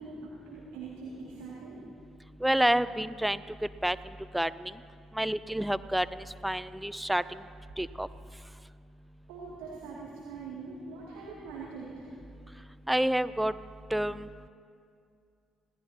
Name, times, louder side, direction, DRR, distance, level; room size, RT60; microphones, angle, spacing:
voice 1, 0.0-1.8 9.3-12.1, right 4 dB, 70° right, -6 dB, 2.5 m, -43 dB
voice 2, 2.4-3.4 3.8-4.0 4.3-4.7 5.2-6.1 6.4-7.2 7.8-8.1 12.9-13.5 13.9-14.3, right 1 dB, 5° right, 16 dB, 0.5 m, -28 dB
26.5 x 17.5 x 2.9 m, 2.4 s
figure-of-eight pair, 50°, 0 cm